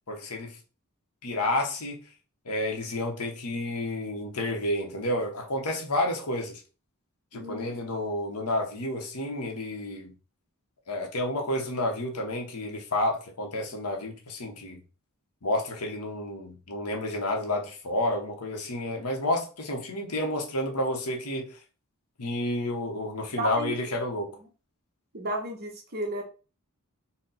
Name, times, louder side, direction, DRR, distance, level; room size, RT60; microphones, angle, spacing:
voice 1, 0.1-0.6 1.2-2.0 2.4-6.6 7.3-10.1 10.9-14.8 15.4-21.6 22.2-24.3, left 1 dB, 90° left, 1.0 m, -30 dB
voice 2, 7.3-7.7 23.3-23.9 25.1-26.2, right 1 dB, 45° right, 1.1 m, -33 dB
4.1 x 2.2 x 3.9 m
head